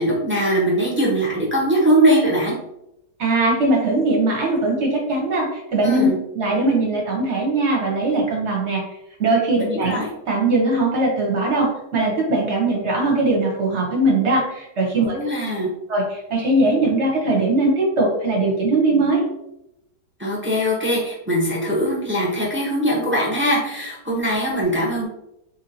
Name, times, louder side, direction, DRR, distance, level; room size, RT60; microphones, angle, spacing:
voice 1, 0.0-2.6 5.8-6.2 9.6-10.1 15.0-15.7 20.2-25.1, right 1 dB, 20° right, -5 dB, 0.3 m, -21 dB
voice 2, 3.2-6.1 6.3-8.8 9.2-9.9 10.3-15.2 15.9-19.2, right 2 dB, 50° right, -1 dB, 1.0 m, -20 dB
4.2 x 2.7 x 2.7 m, 0.84 s
omnidirectional pair, 1.9 m